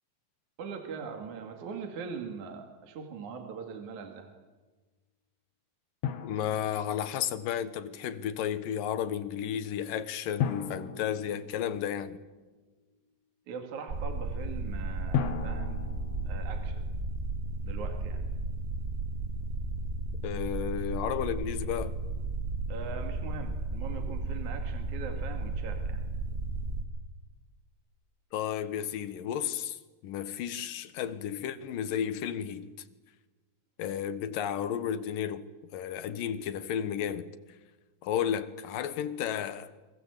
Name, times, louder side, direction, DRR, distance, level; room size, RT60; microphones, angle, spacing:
voice 1, 0.6-4.3 13.5-15.8 16.3-16.8 17.6-18.3 22.7-26.0, right 5 dB, 60° right, 3.4 m, -41 dB
Drum, 6.0-7.5 10.4-12.2 15.1-16.8, left 9 dB, 60° left, 2.2 m, -36 dB
voice 2, 6.2-12.2 20.2-22.0 28.3-32.7 33.8-37.3 38.0-39.8, left 9 dB, 80° left, 3.0 m, -33 dB
sound 1, 13.9-26.8, right 2 dB, 25° right, 1.7 m, -34 dB
29.5 x 23.5 x 8.2 m
omnidirectional pair, 3.9 m